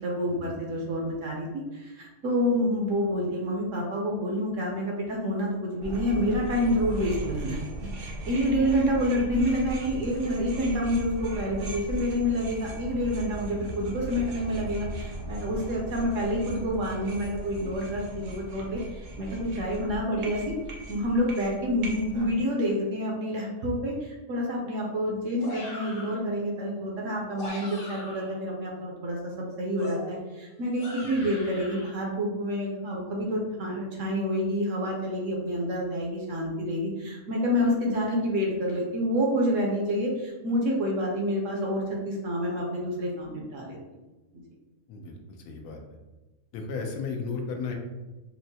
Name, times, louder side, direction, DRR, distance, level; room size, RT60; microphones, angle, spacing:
voice 1, 0.0-7.7 8.0-20.5 20.9-43.8, equal, 65° right, -2 dB, 0.9 m, -28 dB
sound 1, 5.8-22.3, right 1 dB, 80° right, 0.5 m, -38 dB
voice 2, 8.2-8.6 31.0-31.3 44.9-45.2 45.5-45.8 46.5-47.8, left 4 dB, 80° left, 3 dB, 1.1 m, -35 dB
sound 2, 25.4-26.2 27.2-28.4 29.8-31.9, left 1 dB, 50° left, 0.7 m, -41 dB
4.4 x 2.0 x 2.7 m, 1.1 s
omnidirectional pair, 1.6 m